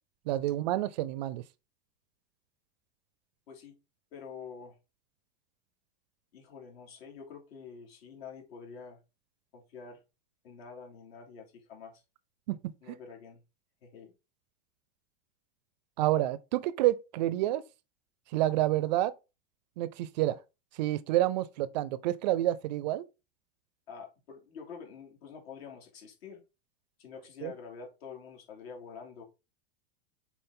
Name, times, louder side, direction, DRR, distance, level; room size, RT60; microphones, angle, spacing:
voice 1, 0.3-1.4 12.5-13.0 16.0-17.6 18.3-19.1 19.8-20.4 20.8-23.1 27.4-27.5, right 15 dB, 45° right, 0.4 m, -29 dB
voice 2, 4.1-4.8 6.3-9.0 9.5-10.0 10.4-12.0 12.8-13.4 13.8-14.1 23.9-26.4 27.0-29.2, left 6 dB, 70° left, 3.0 m, -47 dB
6.9 x 4.2 x 3.7 m
supercardioid pair, 175°, 32 cm